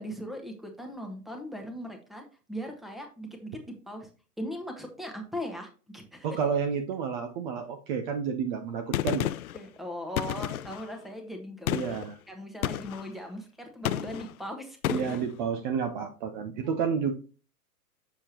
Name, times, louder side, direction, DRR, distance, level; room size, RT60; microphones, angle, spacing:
voice 1, 0.0-4.1 4.4-6.3 9.5-12.0 12.3-15.2 16.6-16.7, equal, ahead, 3 dB, 1.3 m, -39 dB
voice 2, 6.2-9.3 11.7-12.2 14.9-17.1, right 6 dB, 30° right, 5 dB, 0.8 m, -30 dB
Gunshot gunfire, 8.9-9.6 10.2-10.9 11.7-12.1 12.6-13.1 13.8-14.3 14.8-15.2, left 12 dB, 60° left, 0.5 m, -31 dB
7.1 x 7.0 x 2.9 m, 0.35 s
figure-of-eight pair, 115°, 48 cm